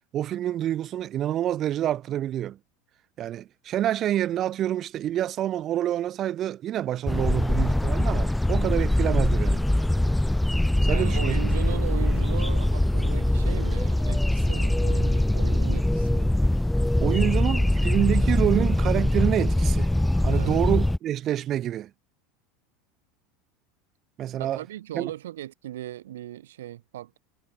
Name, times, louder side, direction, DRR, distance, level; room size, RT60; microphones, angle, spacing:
voice 1, 0.1-2.6 3.2-9.7 10.8-11.4 17.0-19.9 20.2-21.9 24.2-24.6 24.9-25.1, right 12 dB, 40° right, 7.8 m, -27 dB
sound 1, 7.1-21.0, left 1 dB, 5° left, 1.6 m, -23 dB
voice 2, 10.9-16.3 17.0-17.4 20.3-20.7 24.4-27.2, right 13 dB, 70° right, 6.2 m, -38 dB
figure-of-eight pair, 80°, 0 cm